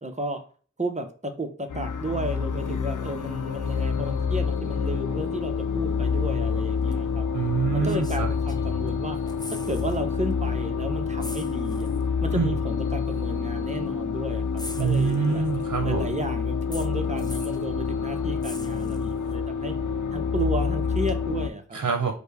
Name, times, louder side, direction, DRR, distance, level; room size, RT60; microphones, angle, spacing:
voice 1, 0.0-0.4 0.8-7.3 7.7-9.2 9.5-11.9 12.2-15.4 15.8-19.8 20.1-21.8, right 1 dB, 25° right, 6 dB, 0.8 m, -33 dB
sound 1, 1.7-21.5, left 6 dB, 85° left, 0.5 m, -28 dB
sound 2, 6.9-7.0 7.8-8.9 9.2-10.0 10.3-10.5 11.2-12.1 13.1-13.2 14.6-15.6 16.7-17.7 18.4-19.3 21.1-21.2, left 2 dB, 15° left, 0.5 m, -42 dB
voice 2, 7.3-8.3 12.3-12.5 14.8-16.1 21.7-22.1, right 5 dB, 80° right, 4 dB, 0.7 m, -25 dB
5.1 x 2.2 x 4.7 m, 0.41 s
wide cardioid pair, 60°, 30 cm